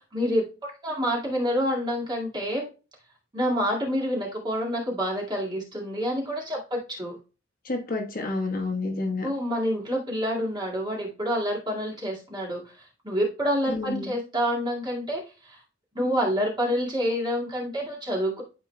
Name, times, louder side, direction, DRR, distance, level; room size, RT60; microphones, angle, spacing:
voice 1, 0.1-2.6 3.3-7.2 9.2-12.6 13.0-15.6 16.0-18.4, equal, 25° right, -3 dB, 2.1 m, -27 dB
voice 2, 7.6-9.3 13.7-14.1, left 2 dB, 45° left, 3 dB, 1.2 m, -29 dB
12.0 x 4.5 x 2.2 m, 0.32 s
head